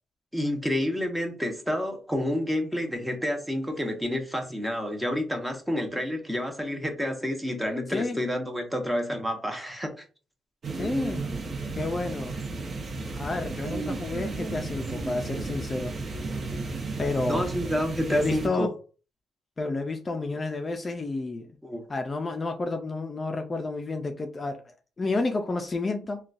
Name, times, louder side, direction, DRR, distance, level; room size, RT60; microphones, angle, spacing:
voice 1, 0.3-10.0 17.3-18.7 21.6-21.8, equal, 5° right, 0.8 m, -29 dB
sound 1, 10.6-18.5, right 3 dB, 55° right, 0.8 m, -33 dB
voice 2, 10.7-11.3 11.8-12.3 13.1-15.9 17.0-17.4 18.1-18.7 19.6-21.5 21.9-24.6 25.0-26.2, left 3 dB, 30° left, 0.4 m, -30 dB
3.8 x 2.3 x 2.4 m
cardioid pair, 90°, 0 cm